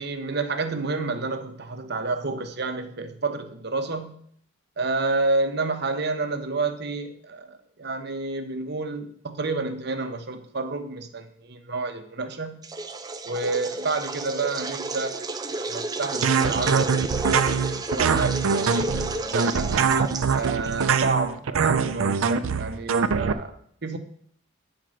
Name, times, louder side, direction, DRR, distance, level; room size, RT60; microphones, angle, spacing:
voice 1, 0.0-4.2 4.8-12.6 13.2-15.2 15.7-17.0 17.9-18.9 19.3-19.7 20.3-24.0, right 3 dB, 55° right, 8 dB, 0.9 m, -29 dB
sound 1, 12.6-21.2, right 3 dB, 20° right, 0.5 m, -32 dB
sound 2, 16.2-23.3, right 5 dB, 85° right, 0.5 m, -23 dB
9.3 x 4.4 x 6.3 m, 0.63 s
head